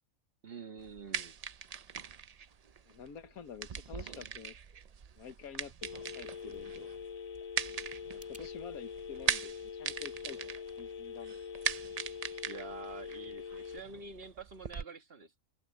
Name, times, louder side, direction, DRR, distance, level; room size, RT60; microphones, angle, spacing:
voice 1, 0.4-1.4 12.5-15.4, right 4 dB, 45° right, 1.6 m, -47 dB
sound 1, 0.8-14.8, right 7 dB, 70° right, 0.3 m, -41 dB
voice 2, 2.9-4.5 5.2-6.9 8.1-10.5 10.8-11.4, left 7 dB, 85° left, 1.6 m, -48 dB
Telephone, 5.8-13.8, left 6 dB, 60° left, 0.3 m, -44 dB
sound 2, 8.1-8.5, right 1 dB, 5° right, 1.9 m, -63 dB
omnidirectional pair, 1.5 m